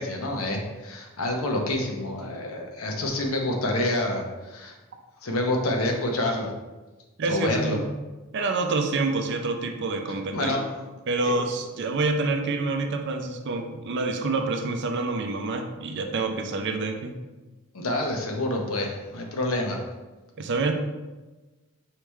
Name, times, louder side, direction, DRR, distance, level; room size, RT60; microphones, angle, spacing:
voice 1, 0.0-4.7 5.2-6.5 7.2-7.8 10.3-10.7 11.2-11.3 17.7-19.8, left 1 dB, 70° left, 1 dB, 0.8 m, -27 dB
voice 2, 7.2-7.9 8.3-10.5 11.1-17.1 20.4-20.7, right 3 dB, 55° right, 5 dB, 0.5 m, -27 dB
4.7 x 3.5 x 3.1 m, 1.2 s
head